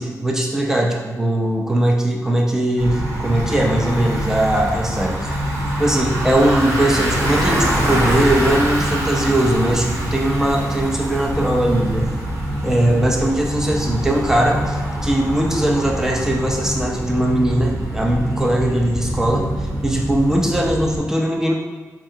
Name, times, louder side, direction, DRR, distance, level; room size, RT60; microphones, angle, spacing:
voice 1, 0.0-5.3 5.8-12.1 12.6-19.5 19.8-21.5, right 1 dB, 10° right, 0 dB, 0.4 m, -20 dB
Bicycle, 2.8-21.0, right 1 dB, 50° right, 0.8 m, -24 dB
4.6 x 2.4 x 2.7 m, 1.3 s
wide cardioid pair, 160°, 6 cm